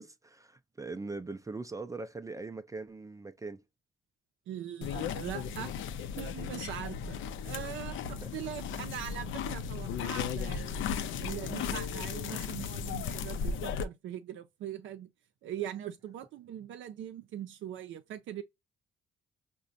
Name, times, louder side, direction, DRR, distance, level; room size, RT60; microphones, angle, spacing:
voice 1, 0.0-3.6 8.2-8.3, right 3 dB, 15° right, 0.4 m, -41 dB
voice 2, 4.5-5.8 6.2-7.2 7.4-10.8 11.2-15.1 15.4-18.4, right 10 dB, 75° right, 0.5 m, -41 dB
sound 1, 4.8-13.8, left 7 dB, 80° left, 0.5 m, -36 dB
4.9 x 2.2 x 2.5 m
cardioid pair, 90°, 20 cm